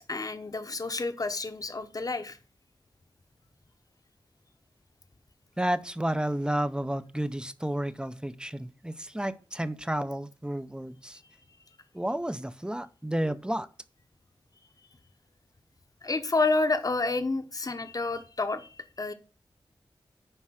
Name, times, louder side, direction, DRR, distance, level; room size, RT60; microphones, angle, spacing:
voice 1, 0.0-2.4 16.0-19.1, left 3 dB, 40° left, 1.1 m, -29 dB
voice 2, 5.6-11.2 11.9-13.7, right 1 dB, 10° right, 0.7 m, -31 dB
10.0 x 4.8 x 6.3 m
wide cardioid pair, 90°, 9 cm